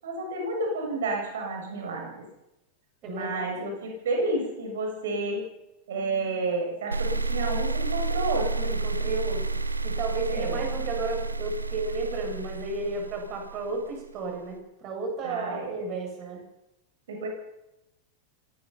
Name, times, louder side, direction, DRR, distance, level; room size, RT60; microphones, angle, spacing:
voice 1, 0.0-2.3 3.1-5.4 5.9-8.7 10.3-10.7 15.2-15.8 17.1-17.3, right 2 dB, 60° right, 2 dB, 7.6 m, -30 dB
voice 2, 3.0-3.5 8.6-9.5 9.8-16.4, right 3 dB, 35° right, 2 dB, 7.9 m, -33 dB
sound 1, 6.9-14.0, right 3 dB, 80° right, 1.2 m, -30 dB
25.5 x 18.5 x 5.8 m, 0.91 s
figure-of-eight pair, 90°, 0 cm